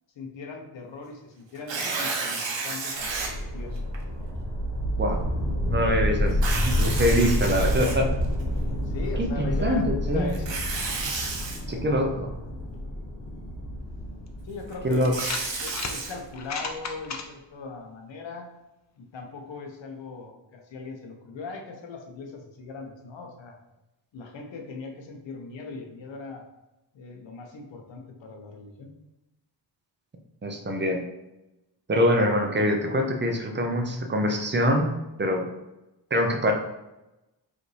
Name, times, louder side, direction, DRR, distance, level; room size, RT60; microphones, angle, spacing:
voice 1, 0.2-3.8 8.8-10.6 14.4-15.3 15.6-18.5 19.0-23.6 24.1-26.5 26.9-28.9, left 4 dB, 85° left, 3 dB, 0.9 m, -39 dB
Tearing, 1.6-3.3 3.9-4.0 6.3-8.4 10.3-11.6 14.7-16.1, right 3 dB, 85° right, 1.0 m, -31 dB
sound 1, 3.0-16.1, equal, 70° left, 1.2 m, -29 dB
voice 2, 5.7-8.1 9.2-10.3 11.7-12.3 14.8-15.1 30.4-31.0 31.9-34.9 35.2-35.5 36.1-36.5, equal, 25° right, 3 dB, 0.5 m, -24 dB
sound 2, 14.3-14.4 15.0-16.0 16.3-17.2, left 4 dB, 40° left, 0.5 m, -33 dB
4.9 x 2.6 x 3.2 m, 0.97 s
wide cardioid pair, 130°, 43 cm